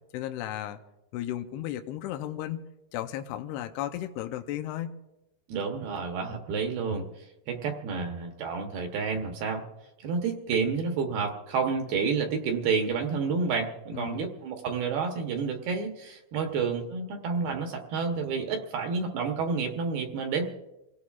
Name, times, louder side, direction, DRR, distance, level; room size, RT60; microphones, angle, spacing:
voice 1, 0.1-0.8 1.1-2.6 2.9-4.9 13.9-14.3, left 12 dB, 80° left, 6 dB, 2.4 m, -34 dB
voice 2, 5.5-9.6 10.0-20.5, right 5 dB, 70° right, 3 dB, 2.6 m, -30 dB
27.5 x 17.5 x 2.4 m, 0.96 s
omnidirectional pair, 5.3 m